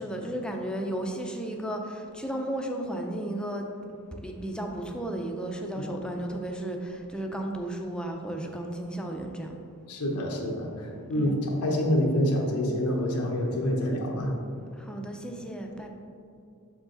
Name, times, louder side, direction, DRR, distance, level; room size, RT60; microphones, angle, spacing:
voice 1, 0.0-3.7 4.1-9.5 11.2-11.4 14.8-15.9, right 1 dB, 5° left, 2 dB, 0.5 m, -34 dB
voice 2, 9.9-14.3, equal, 90° left, -1 dB, 1.1 m, -27 dB
6.4 x 4.8 x 3.9 m, 2.5 s
head